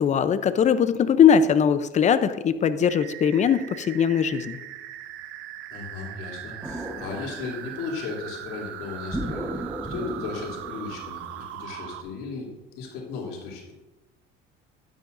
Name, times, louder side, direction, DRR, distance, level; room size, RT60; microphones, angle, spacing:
voice 1, 0.0-4.6, left 7 dB, 35° left, 12 dB, 0.6 m, -20 dB
sound 1, 2.8-12.0, right 12 dB, 70° right, 0.8 m, -40 dB
voice 2, 5.7-13.7, left 4 dB, 80° left, -3 dB, 3.2 m, -36 dB
sound 2, 6.6-8.1 9.1-11.5, right 1 dB, 5° right, 1.2 m, -35 dB
12.5 x 10.0 x 2.6 m, 1.1 s
cardioid pair, 110°, 21 cm